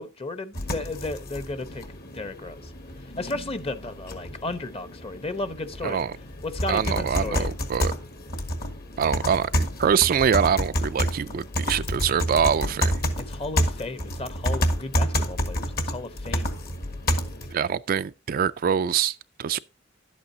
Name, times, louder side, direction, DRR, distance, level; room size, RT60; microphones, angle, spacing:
voice 1, 0.0-2.7 3.2-6.0 6.4-7.5 13.3-16.5 17.2-17.3, left 2 dB, 30° left, 0.9 m, -34 dB
sound 1, 0.5-17.5, equal, 50° left, 1.7 m, -29 dB
voice 2, 5.8-6.1 6.7-7.9 9.0-13.0 17.5-19.6, right 7 dB, 45° right, 0.4 m, -24 dB
11.5 x 8.5 x 2.7 m
head